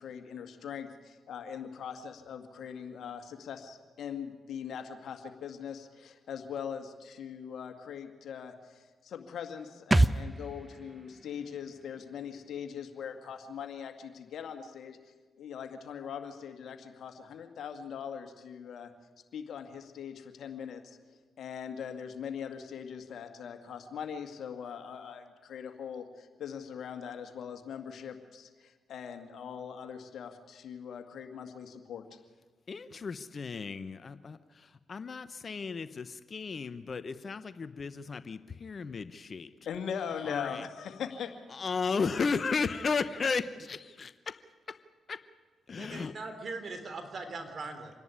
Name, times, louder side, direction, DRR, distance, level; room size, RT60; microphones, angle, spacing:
voice 1, 0.0-15.0 15.4-18.9 19.3-21.0 21.4-32.1 39.6-41.4, left 7 dB, 70° left, 6 dB, 1.9 m, -41 dB
sound 1, 9.9-13.4 13.7-13.8, right 1 dB, 20° right, 0.7 m, -31 dB
voice 2, 32.7-39.5 40.2-40.6 41.5-44.4 44.7-44.8 45.1-45.2 45.7-46.1, left 5 dB, 50° left, 13 dB, 0.9 m, -34 dB
voice 3, 45.8-47.9, right 3 dB, 50° right, 7 dB, 3.7 m, -40 dB
26.5 x 11.0 x 9.8 m, 1.4 s
supercardioid pair, 50°, 0 cm